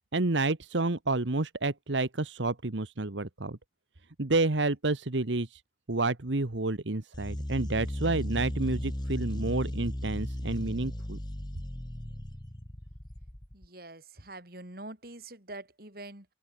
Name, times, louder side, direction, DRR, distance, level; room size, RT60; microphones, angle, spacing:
voice 1, 0.1-3.6 4.2-5.6 5.9-11.2, right 2 dB, 80° right, 1.4 m, -29 dB
sound 1, 7.1-13.7, equal, 25° left, 1.6 m, -36 dB
voice 2, 13.5-16.3, right 2 dB, 50° right, 5.1 m, -45 dB
open air
head